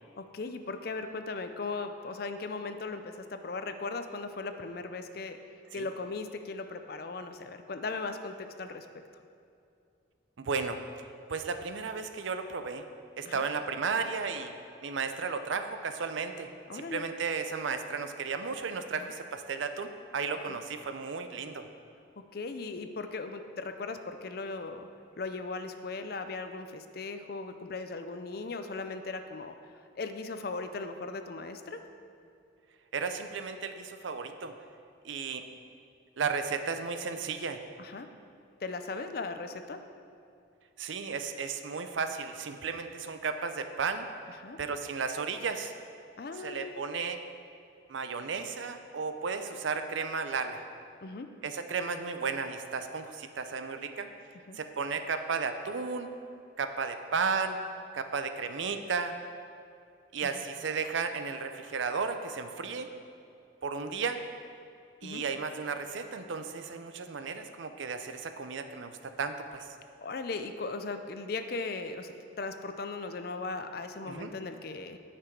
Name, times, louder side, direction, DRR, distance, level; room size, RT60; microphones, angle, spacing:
voice 1, 0.2-5.4 5.7-8.9 13.2-13.4 16.7-17.1 19.0-19.1 20.5-20.6 22.3-24.9 25.2-29.6 29.9-31.8 37.8-38.1 38.6-39.8 44.4-44.6 46.2-46.7 51.0-51.3 54.5-54.6 60.2-60.3 65.0-65.2 70.0-75.0, left 3 dB, 50° left, 8 dB, 0.5 m, -38 dB
voice 2, 10.4-10.8 11.3-12.9 13.2-14.5 14.8-21.7 32.9-34.5 35.0-35.4 36.2-37.6 40.8-44.1 44.6-45.7 46.4-47.2 47.9-50.6 51.4-54.1 54.5-56.1 56.6-57.6 57.9-59.1 60.1-62.9 63.6-64.2 65.0-69.7 74.1-74.3, right 5 dB, 75° right, 8 dB, 0.5 m, -34 dB
9.5 x 6.0 x 4.6 m, 2.5 s
head